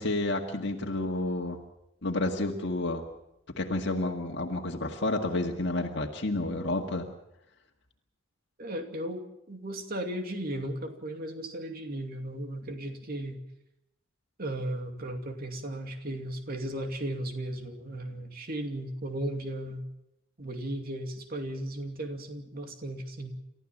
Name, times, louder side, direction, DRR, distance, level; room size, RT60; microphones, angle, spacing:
voice 1, 0.0-1.6 2.0-3.0 3.6-7.1, left 2 dB, 60° left, 2 dB, 1.9 m, -30 dB
voice 2, 8.6-13.4 14.4-19.8 20.4-23.3, right 1 dB, 50° right, 5 dB, 2.6 m, -36 dB
29.5 x 14.0 x 7.4 m, 0.84 s
head